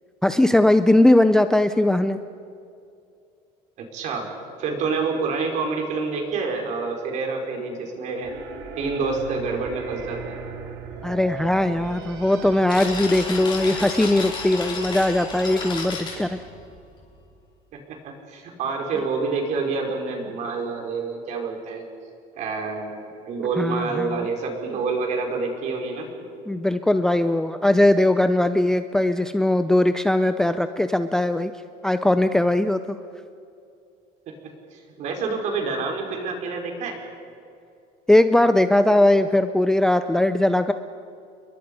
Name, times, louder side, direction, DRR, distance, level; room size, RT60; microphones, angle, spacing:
voice 1, 0.2-2.2 11.0-16.4 23.6-24.3 26.5-31.5 31.8-33.0 38.1-40.7, left 1 dB, 5° left, 10 dB, 0.5 m, -19 dB
voice 2, 3.8-4.3 4.6-8.3 8.8-10.4 17.7-21.8 22.4-26.1 34.7-37.0, right 4 dB, 50° right, 2 dB, 4.8 m, -28 dB
sound 1, 8.2-15.0, right 6 dB, 75° right, 4.6 m, -38 dB
sound 2, 12.7-17.0, left 4 dB, 30° left, 4.8 m, -32 dB
30.0 x 22.5 x 5.4 m, 2.5 s
cardioid pair, 160°, 16 cm